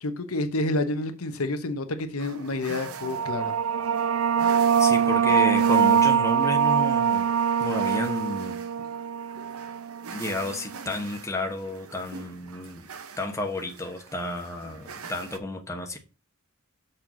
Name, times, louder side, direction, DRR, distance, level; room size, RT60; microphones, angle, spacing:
voice 1, 0.0-3.6, left 2 dB, 85° left, 1.1 m, -29 dB
sound 1, 2.2-15.4, right 6 dB, 85° right, 0.8 m, -44 dB
sound 2, 2.9-10.1, right 7 dB, 70° right, 0.4 m, -23 dB
voice 2, 4.8-7.3 7.6-8.6 10.1-12.9 13.2-16.0, left 2 dB, 15° left, 1.1 m, -31 dB
6.6 x 4.4 x 6.1 m
head